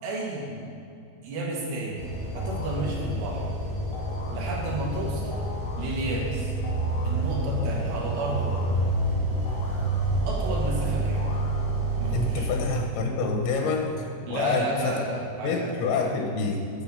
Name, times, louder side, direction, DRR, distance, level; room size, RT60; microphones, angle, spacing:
voice 1, 0.0-0.6 1.2-2.1 2.3-3.5 4.3-5.4 5.8-6.5 7.0-8.7 10.3-11.3 12.0-12.5 14.3-16.1, right 2 dB, 65° right, -3 dB, 4.0 m, -32 dB
sound 1, 2.0-12.3, right 1 dB, 40° right, 3.0 m, -28 dB
sound 2, 2.4-2.9 3.9-4.5 5.3-5.9 6.6-7.3 8.1-8.8 9.5-10.4 11.1-12.0, left 2 dB, 70° left, 3.2 m, -43 dB
voice 2, 12.1-15.0 15.4-16.7, left 4 dB, 90° left, 2 dB, 3.3 m, -27 dB
9.1 x 8.1 x 7.2 m, 2.5 s
omnidirectional pair, 5.3 m